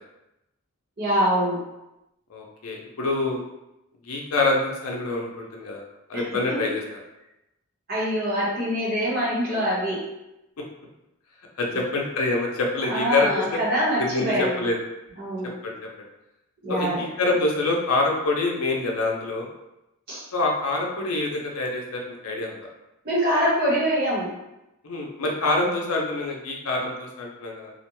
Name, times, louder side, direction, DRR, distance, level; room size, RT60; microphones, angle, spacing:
voice 1, 1.0-1.6 6.1-6.2 7.9-10.1 12.8-14.6 15.2-15.5 16.6-17.0 20.1-20.2 23.0-24.3 25.4-25.5, equal, 45° right, -7 dB, 1.0 m, -24 dB
voice 2, 2.3-3.4 4.0-5.8 6.1-6.8 11.6-13.6 14.0-14.7 15.6-15.7 16.7-19.5 20.3-22.6 24.8-27.7, left 2 dB, 75° left, 0 dB, 0.5 m, -26 dB
2.4 x 2.1 x 2.9 m, 0.91 s
head